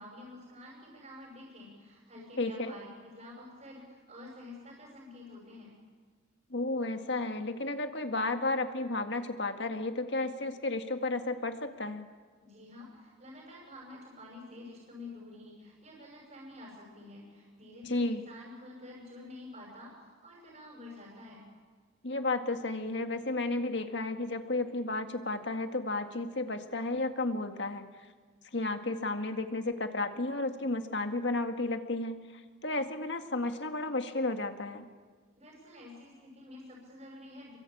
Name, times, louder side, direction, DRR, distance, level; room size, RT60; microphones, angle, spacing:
voice 1, 0.0-5.7 12.4-19.9 20.2-21.4 35.4-37.6, left 2 dB, 35° right, -2 dB, 6.0 m, -49 dB
voice 2, 2.4-2.7 6.5-12.1 17.9-18.2 22.0-27.9 28.5-34.8, left 2 dB, 60° left, 6 dB, 1.9 m, -33 dB
28.5 x 23.5 x 8.7 m, 1.5 s
head